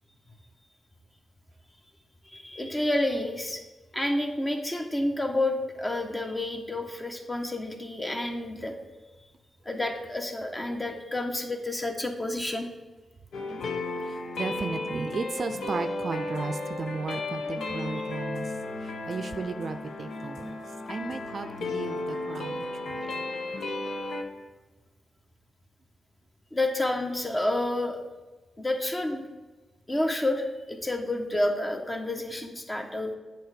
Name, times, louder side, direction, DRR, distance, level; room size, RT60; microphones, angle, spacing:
voice 1, 2.2-3.6 3.9-8.7 9.6-12.7 26.5-28.0 28.6-29.3 29.9-33.2, left 1 dB, 25° left, 4 dB, 1.3 m, -29 dB
sound 1, 13.3-24.2, left 2 dB, 75° left, 0.9 m, -34 dB
voice 2, 14.0-18.5 18.8-20.6 20.9-23.2, right 4 dB, 55° right, 9 dB, 0.5 m, -35 dB
7.8 x 4.5 x 5.1 m, 1.2 s
supercardioid pair, 45°, 0 cm